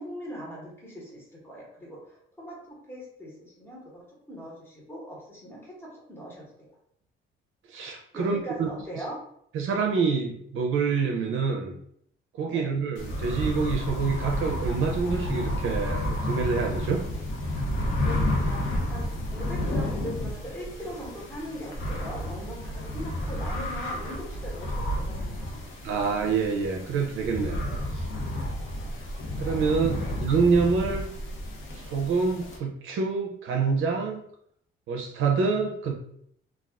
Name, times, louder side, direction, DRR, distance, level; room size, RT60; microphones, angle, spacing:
voice 1, 0.0-6.8 8.1-9.2 12.4-12.7 18.0-25.6 29.9-30.1, equal, 10° left, -4 dB, 0.9 m, -40 dB
voice 2, 7.7-8.7 9.5-11.7 12.3-17.0 25.8-27.6 27.9-28.1 29.4-31.1 31.7-34.2 34.9-35.9, right 5 dB, 70° right, 1 dB, 0.5 m, -26 dB
sound 1, 13.0-32.6, left 1 dB, 65° left, 0.6 m, -31 dB
2.4 x 2.3 x 3.3 m, 0.68 s
cardioid pair, 165°, 21 cm